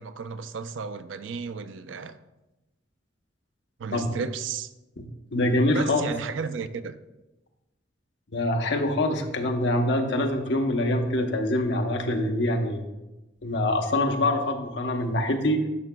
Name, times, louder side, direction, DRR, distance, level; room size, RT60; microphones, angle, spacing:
voice 1, 0.0-2.2 3.8-4.7 5.7-7.0, right 5 dB, 90° right, 0.4 m, -33 dB
voice 2, 5.0-6.0 8.3-12.8 13.4-15.6, left 1 dB, 65° left, 0.8 m, -25 dB
11.0 x 5.9 x 2.2 m
head